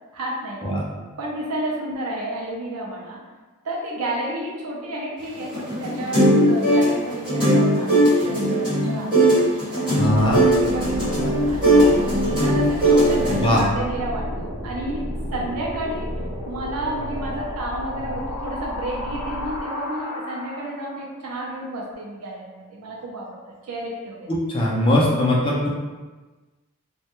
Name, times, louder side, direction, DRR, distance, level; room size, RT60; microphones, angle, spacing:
voice 1, 0.1-0.8 1.2-3.2 3.6-9.1 9.7-10.3 10.6-12.1 12.4-16.1 16.5-24.3, right 1 dB, 75° right, -2 dB, 0.5 m, -31 dB
sound 1, 5.4-13.6, right 1 dB, 20° right, 1.1 m, -19 dB
sound 2, 10.0-21.0, left 1 dB, 75° left, 0.5 m, -31 dB
voice 2, 10.0-10.4 13.4-13.6 24.3-25.7, left 1 dB, 25° left, -5 dB, 0.4 m, -20 dB
2.1 x 2.1 x 2.9 m, 1.3 s
head